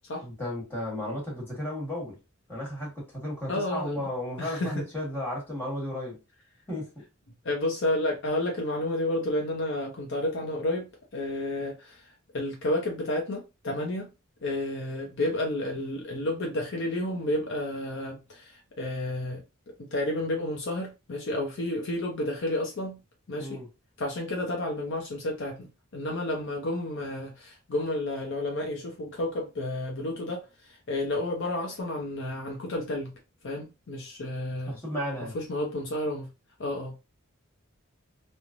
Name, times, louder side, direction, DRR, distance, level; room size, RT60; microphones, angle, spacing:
voice 1, 0.2-2.2 2.5-6.2 6.7-7.0 23.4-23.7 34.7-35.4, left 1 dB, 10° left, 1.4 m, -34 dB
voice 2, 3.5-4.1 4.4-4.9 7.4-14.1 14.4-19.4 19.8-23.0 23.3-23.6 24.0-33.1 33.4-34.8 35.3-36.3 36.6-37.0, left 1 dB, 60° left, 0.7 m, -31 dB
3.0 x 2.1 x 2.4 m
head